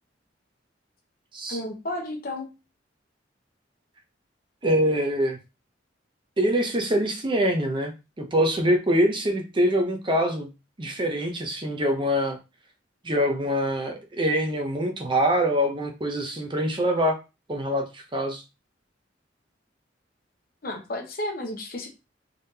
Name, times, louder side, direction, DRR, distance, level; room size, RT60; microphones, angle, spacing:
voice 1, 1.5-2.5 20.6-21.9, left 1 dB, 50° left, 3 dB, 1.0 m, -32 dB
voice 2, 4.6-5.4 6.4-10.5 10.8-12.4 13.0-17.1 17.5-18.4, equal, 25° right, 3 dB, 0.7 m, -24 dB
3.7 x 3.4 x 2.7 m, 0.28 s
head